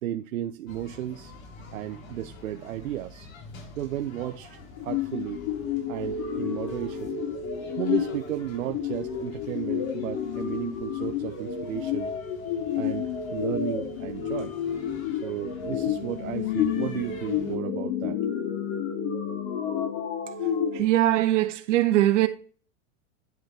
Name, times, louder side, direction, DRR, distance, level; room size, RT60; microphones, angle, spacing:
voice 1, 0.0-1.3 1.7-3.3 3.8-5.4 5.9-7.1 7.8-12.1 12.8-14.5 15.2-18.2, right 12 dB, 90° right, 0.9 m, -34 dB
sound 1, 0.7-17.6, left 2 dB, 90° left, 3.7 m, -47 dB
sound 2, 4.8-20.8, left 8 dB, 45° left, 3.6 m, -30 dB
voice 2, 20.7-22.3, right 14 dB, 65° right, 1.8 m, -21 dB
10.5 x 6.1 x 3.4 m
supercardioid pair, 160°, 39 cm